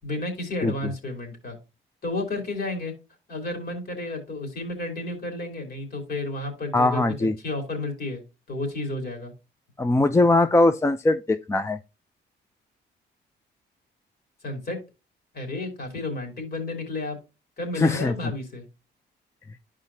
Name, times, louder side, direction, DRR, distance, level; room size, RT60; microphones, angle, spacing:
voice 1, 0.0-1.6 2.0-2.9 3.3-8.2 8.5-9.3 14.4-14.8 15.3-17.2 17.6-18.6, left 2 dB, 50° left, 3.2 m, -32 dB
voice 2, 6.7-7.3 9.8-11.8 17.8-18.1, left 2 dB, 15° left, 0.4 m, -21 dB
11.5 x 4.9 x 2.7 m
cardioid pair, 90°, 20 cm